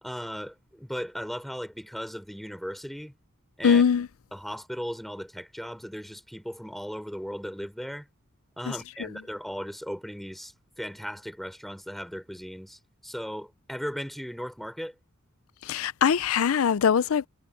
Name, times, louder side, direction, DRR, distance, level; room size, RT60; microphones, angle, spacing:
voice 1, 0.0-3.1 3.6-3.8 4.3-8.1 8.6-14.9, equal, ahead, 3.3 m, -37 dB
voice 2, 3.6-4.1 9.0-9.1 15.6-17.3, left 7 dB, 65° left, 0.4 m, -22 dB
head